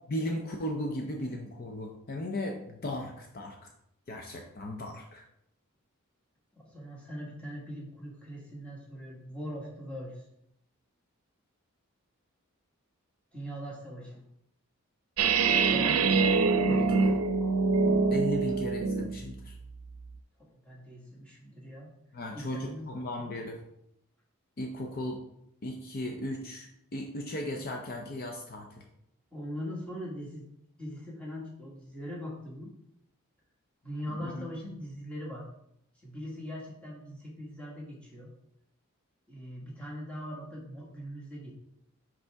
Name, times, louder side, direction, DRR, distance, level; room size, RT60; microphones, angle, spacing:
voice 1, 0.1-3.6 4.1-5.3 16.7-17.2 18.1-19.6 22.1-23.6 24.6-25.2 25.6-28.9 34.1-34.4, left 1 dB, 45° left, 2 dB, 0.6 m, -36 dB
voice 2, 6.6-10.2 13.3-14.2 15.7-16.2 20.4-21.9 22.3-23.0 29.3-30.5 30.8-32.7 33.8-35.5 36.0-38.3 39.3-41.5, equal, 5° left, -4 dB, 1.4 m, -41 dB
sound 1, 15.2-19.2, right 4 dB, 85° right, 0.5 m, -25 dB
5.5 x 5.4 x 3.5 m, 0.76 s
head